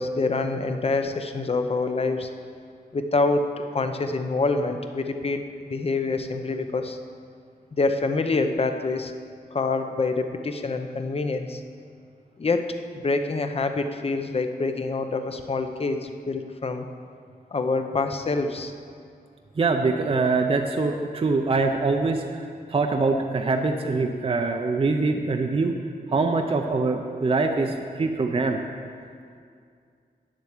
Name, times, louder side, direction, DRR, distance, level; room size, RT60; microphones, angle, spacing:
voice 1, 0.0-2.3 2.9-7.0 7.7-9.1 9.5-11.6 12.4-16.9 17.5-18.7, left 3 dB, 35° left, 7 dB, 0.7 m, -26 dB
voice 2, 19.6-25.7 26.1-28.6, right 3 dB, 35° right, 4 dB, 0.6 m, -24 dB
9.5 x 7.6 x 7.3 m, 2.3 s
wide cardioid pair, 125°, 17 cm